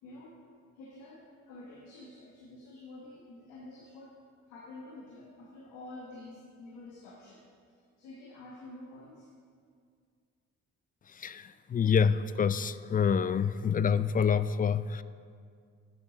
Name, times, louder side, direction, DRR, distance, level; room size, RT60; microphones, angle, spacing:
voice 1, 0.0-0.4 0.8-4.1 4.5-7.4 8.0-9.3, left 2 dB, 85° left, -3 dB, 1.3 m, -48 dB
voice 2, 11.1-15.0, left 6 dB, 30° left, 15 dB, 0.4 m, -27 dB
11.0 x 7.7 x 4.1 m, 2.2 s
supercardioid pair, 60°, 30 cm